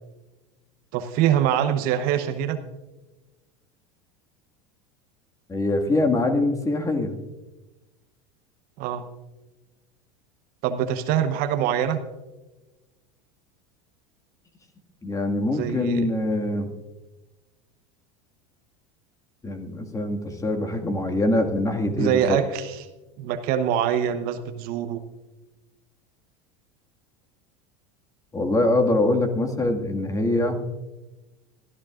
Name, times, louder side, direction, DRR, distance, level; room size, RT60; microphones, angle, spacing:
voice 1, 0.9-2.6 8.8-9.1 10.6-12.0 15.5-16.1 22.0-22.9 23.2-25.0, right 9 dB, 55° right, 9 dB, 1.0 m, -24 dB
voice 2, 5.5-7.1 15.0-16.7 19.4-22.4 28.3-30.6, left 2 dB, 20° left, 4 dB, 2.0 m, -23 dB
21.5 x 13.5 x 2.5 m, 1.1 s
hypercardioid pair, 95°, 18 cm